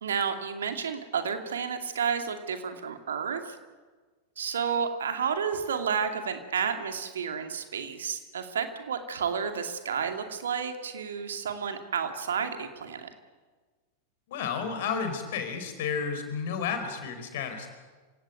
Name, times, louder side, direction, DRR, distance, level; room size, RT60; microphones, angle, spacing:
voice 1, 0.0-3.6 4.4-13.1, right 6 dB, 65° right, 6 dB, 2.5 m, -31 dB
voice 2, 14.3-17.7, left 6 dB, 55° left, 7 dB, 4.6 m, -32 dB
27.0 x 17.5 x 9.3 m, 1.4 s
figure-of-eight pair, 90°, 0 cm